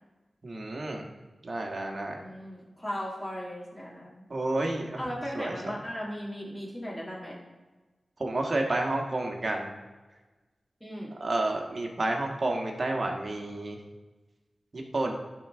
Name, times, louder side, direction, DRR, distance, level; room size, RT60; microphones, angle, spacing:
voice 1, 0.4-1.0 1.4-2.2 4.3-5.0 5.3-5.5 8.2-9.7 11.2-13.8 14.7-15.1, right 2 dB, 55° right, 1 dB, 1.4 m, -30 dB
voice 2, 2.2-4.2 5.0-7.4 10.8-11.1, equal, 10° left, -6 dB, 2.1 m, -37 dB
11.5 x 3.9 x 3.6 m, 1.2 s
cardioid pair, 45°, 0 cm